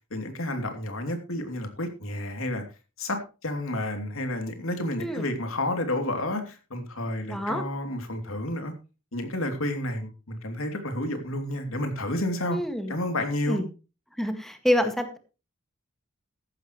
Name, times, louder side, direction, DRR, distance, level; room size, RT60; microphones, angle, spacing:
voice 1, 0.1-2.6 3.0-8.7 9.1-12.6 12.9-13.6, left 1 dB, 80° left, 5 dB, 3.1 m, -30 dB
voice 2, 7.3-7.6 12.5-12.9 13.5-13.6 14.2-15.2, equal, ahead, 7 dB, 1.9 m, -27 dB
14.5 x 12.0 x 3.2 m, 0.32 s
head